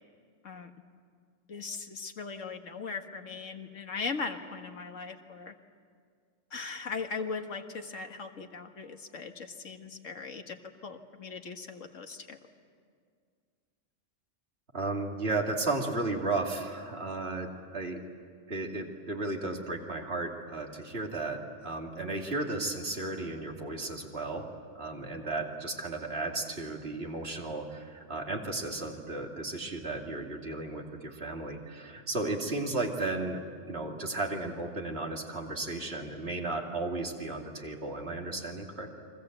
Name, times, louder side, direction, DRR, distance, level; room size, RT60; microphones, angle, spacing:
voice 1, 1.5-5.5 6.5-10.6 10.8-12.4, left 4 dB, 80° left, 5 dB, 1.9 m, -39 dB
voice 2, 14.7-18.0 18.5-24.5 24.7-39.0, right 2 dB, 55° right, 1 dB, 2.9 m, -34 dB
29.5 x 23.5 x 8.0 m, 2.1 s
omnidirectional pair, 1.3 m